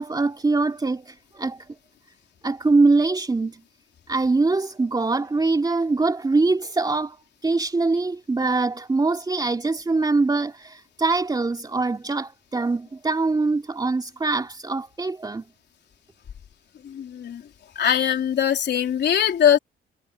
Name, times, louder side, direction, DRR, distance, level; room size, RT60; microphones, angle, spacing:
voice 1, 0.0-1.7 2.4-3.6 4.1-7.2 7.4-15.4, right 3 dB, 20° right, 2.7 m, -23 dB
voice 2, 16.8-17.4 17.8-19.6, left 9 dB, 60° left, 3.5 m, -21 dB
cardioid pair, 90°, 20 cm